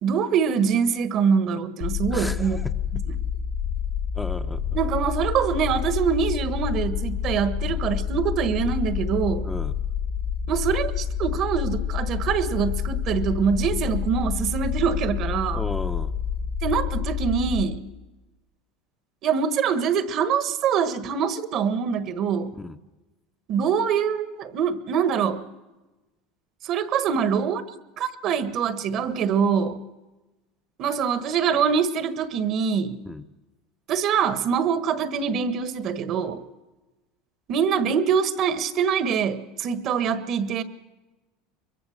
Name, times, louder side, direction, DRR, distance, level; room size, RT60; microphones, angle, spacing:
voice 1, 0.0-2.6 2.9-3.1 4.7-9.5 10.5-15.6 16.6-17.8 19.2-22.5 23.5-25.4 26.6-27.6 28.0-29.8 30.8-33.0 33.9-36.4 37.5-40.6, right 7 dB, 50° right, 11 dB, 1.5 m, -24 dB
sound 1, 1.8-17.6, left 7 dB, 75° left, 2.6 m, -28 dB
voice 2, 2.1-2.7 4.1-4.8 9.4-9.7 15.5-16.1 22.6-22.8 33.0-33.2, left 2 dB, 5° left, 6 dB, 1.0 m, -34 dB
23.0 x 22.5 x 6.6 m, 1.1 s
supercardioid pair, 120°, 0 cm